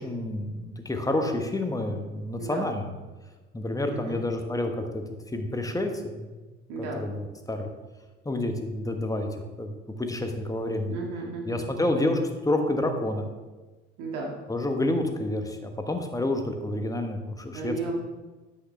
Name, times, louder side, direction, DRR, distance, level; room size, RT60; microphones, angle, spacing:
voice 1, 0.0-2.9 3.5-5.0 5.3-6.3 6.8-7.7 8.2-9.7 10.0-11.0 11.4-13.3 14.5-17.7, left 1 dB, 10° left, 5 dB, 1.3 m, -29 dB
voice 2, 2.4-2.7 3.9-4.2 6.7-7.1 10.9-11.7 14.0-14.4 17.5-17.9, right 3 dB, 60° right, 0 dB, 1.8 m, -34 dB
9.8 x 8.2 x 3.4 m, 1.2 s
figure-of-eight pair, 60°, 35 cm